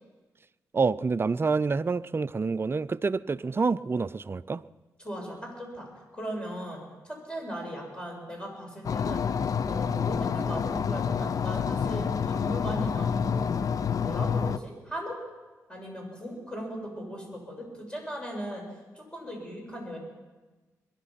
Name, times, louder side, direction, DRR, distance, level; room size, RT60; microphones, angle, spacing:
voice 1, 0.7-4.6, right 4 dB, 35° right, 15 dB, 0.5 m, -27 dB
voice 2, 5.0-5.9 6.1-9.2 9.7-13.7 14.0-15.2 15.7-18.6 19.0-20.0, equal, 15° left, 0 dB, 7.1 m, -38 dB
sound 1, 8.8-14.6, left 6 dB, 60° left, 0.6 m, -28 dB
22.5 x 11.0 x 5.9 m, 1.2 s
supercardioid pair, 50°, 7 cm